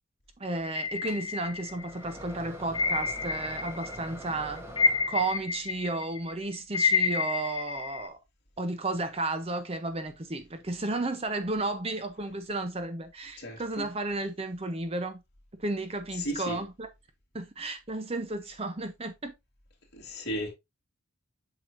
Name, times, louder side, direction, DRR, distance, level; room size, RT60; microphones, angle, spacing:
voice 1, 0.4-4.6 5.1-8.2 8.6-15.2 15.6-16.9 17.3-19.3, right 2 dB, 25° right, 0.7 m, -33 dB
sound 1, 0.7-2.0 2.7-4.1 4.3-8.1, left 5 dB, 20° left, 0.6 m, -29 dB
sound 2, 1.1-5.6, equal, 10° right, 1.1 m, -44 dB
voice 2, 13.4-13.9 16.2-16.6 19.9-20.5, equal, 50° left, 2.8 m, -35 dB
7.7 x 6.0 x 2.6 m
head